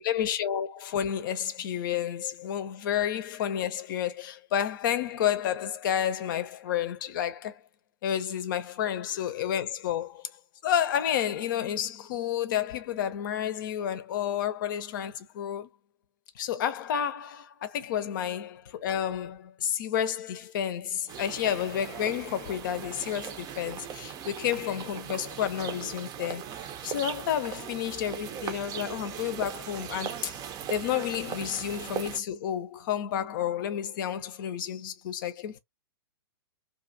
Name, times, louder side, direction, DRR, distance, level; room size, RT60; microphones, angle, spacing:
voice 1, 0.0-7.6 8.0-10.3 10.6-15.7 16.3-26.4 26.8-30.4 30.7-35.6, left 10 dB, 50° left, 0.7 m, -30 dB
sound 1, 21.1-32.2, right 9 dB, 25° right, 0.6 m, -39 dB
2.7 x 2.4 x 2.6 m
figure-of-eight pair, 110°, 14 cm